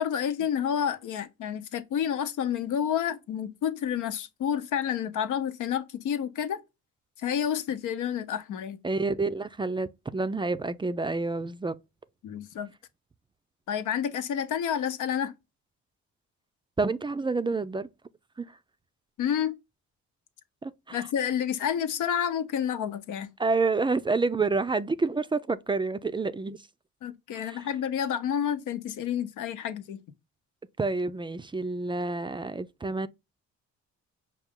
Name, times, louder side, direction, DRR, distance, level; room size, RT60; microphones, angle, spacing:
voice 1, 0.0-6.6 7.2-8.8 12.2-12.7 13.7-15.3 19.2-19.5 20.9-23.3 27.0-30.0, left 8 dB, 80° left, 0.8 m, -29 dB
voice 2, 8.8-11.8 16.8-17.9 20.6-21.0 23.4-26.6 27.3-27.6 30.8-33.1, right 3 dB, 15° right, 0.4 m, -28 dB
5.8 x 2.4 x 3.6 m
cardioid pair, 90°, 30 cm